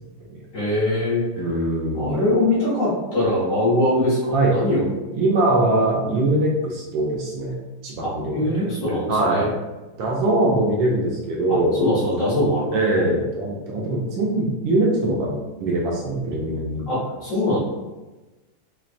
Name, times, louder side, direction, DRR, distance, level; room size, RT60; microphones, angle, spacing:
voice 1, 0.5-1.4 1.9-4.9 8.0-9.5 11.5-13.2 16.9-17.6, left 1 dB, 50° left, -8 dB, 1.2 m, -22 dB
voice 2, 1.4-2.2 4.3-4.5 5.1-7.5 7.8-8.6 9.1-9.5 10.0-11.8 12.7-16.8, right 2 dB, 75° right, -2 dB, 1.2 m, -22 dB
3.3 x 3.1 x 2.4 m, 1.1 s
omnidirectional pair, 2.3 m